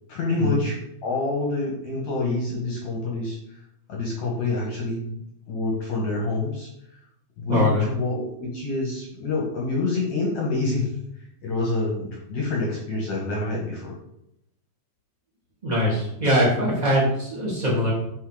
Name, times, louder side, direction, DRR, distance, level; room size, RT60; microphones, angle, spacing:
voice 1, 0.1-3.4 3.9-5.2 5.5-6.7 7.4-10.9 11.4-14.0, left 2 dB, 55° left, -3 dB, 2.1 m, -27 dB
voice 2, 7.5-7.9 15.6-17.9, equal, 15° right, -6 dB, 1.3 m, -22 dB
10.0 x 4.4 x 5.1 m, 0.78 s
omnidirectional pair, 5.5 m